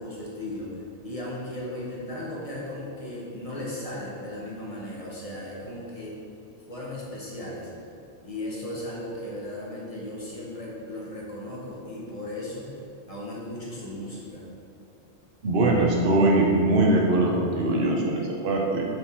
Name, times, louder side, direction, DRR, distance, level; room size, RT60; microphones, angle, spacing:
voice 1, 0.0-6.2 6.7-7.7 8.2-12.8 13.1-14.4, left 1 dB, 30° left, -5 dB, 1.5 m, -36 dB
voice 2, 15.4-18.8, right 2 dB, 55° right, -1 dB, 1.1 m, -22 dB
7.9 x 4.9 x 4.3 m, 2.4 s
omnidirectional pair, 1.2 m